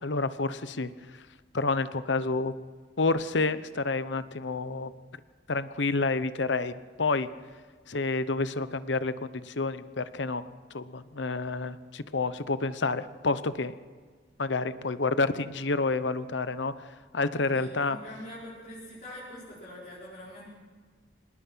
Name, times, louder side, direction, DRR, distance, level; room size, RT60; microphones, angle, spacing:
voice 1, 0.0-0.9 1.5-2.5 3.0-4.9 5.5-7.3 7.9-10.4 10.7-13.7 14.4-16.7 17.1-18.0, left 3 dB, 85° left, 13 dB, 1.0 m, -29 dB
voice 2, 17.5-20.5, left 1 dB, 40° left, -8 dB, 5.4 m, -44 dB
25.5 x 20.0 x 5.7 m, 1.5 s
head